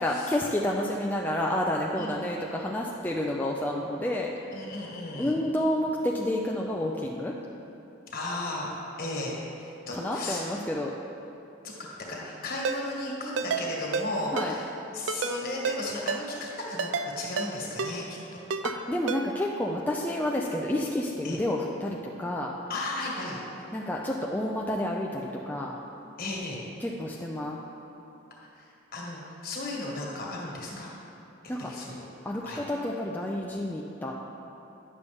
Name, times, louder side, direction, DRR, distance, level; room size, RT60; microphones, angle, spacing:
voice 1, 0.0-4.3 5.1-7.3 9.9-10.9 14.3-14.5 18.6-22.5 23.7-25.8 26.8-27.6 30.7-30.8 31.5-31.7 32.2-34.1, left 1 dB, 10° left, -2 dB, 0.4 m, -29 dB
voice 2, 2.0-2.4 4.5-5.4 8.1-10.5 11.6-11.7 12.1-18.2 21.2-21.4 22.7-23.4 26.2-26.6 28.5-28.6 28.9-30.9 31.6-32.0 32.4-32.6, left 2 dB, 50° left, -3 dB, 1.5 m, -35 dB
Ringtone, 12.6-12.8 13.4-13.6 13.9-14.1 14.4-14.5 15.1-15.3 15.6-15.8 16.1-16.2 16.8-17.1 17.4-17.5 17.8-17.9 18.5-18.8 19.1-19.2, right 5 dB, 65° right, 0.4 m, -29 dB
9.8 x 6.6 x 3.5 m, 2.9 s
head